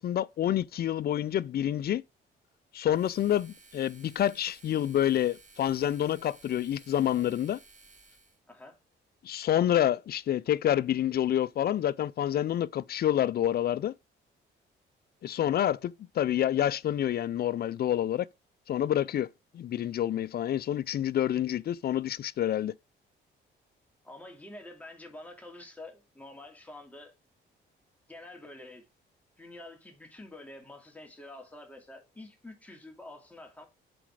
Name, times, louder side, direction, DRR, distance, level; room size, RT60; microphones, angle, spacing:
voice 1, 0.0-2.0 2.7-7.6 9.2-13.9 15.2-18.3 18.7-19.3 19.5-22.7, left 11 dB, 50° left, 0.4 m, -28 dB
sound 1, 2.9-8.4, right 3 dB, 40° right, 2.2 m, -56 dB
voice 2, 8.5-8.8 24.0-27.1 28.1-28.9 29.4-33.6, left 2 dB, 5° left, 2.5 m, -47 dB
7.9 x 4.3 x 4.7 m
cardioid pair, 90°, 20 cm